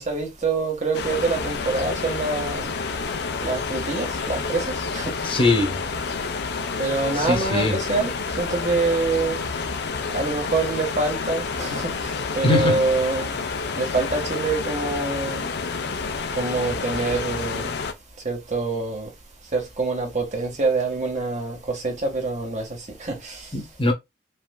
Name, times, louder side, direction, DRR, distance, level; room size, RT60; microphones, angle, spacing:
voice 1, 0.0-2.7 3.4-5.4 6.8-9.4 10.1-13.4 13.8-15.5 16.3-17.8 18.2-19.1 19.5-23.5, right 3 dB, 40° right, 1.7 m, -26 dB
sound 1, 0.9-17.9, left 4 dB, 60° left, 0.7 m, -29 dB
voice 2, 5.2-5.8 7.1-7.8 12.4-12.8 23.5-23.9, left 2 dB, 30° left, 1.1 m, -21 dB
5.2 x 3.3 x 2.3 m
head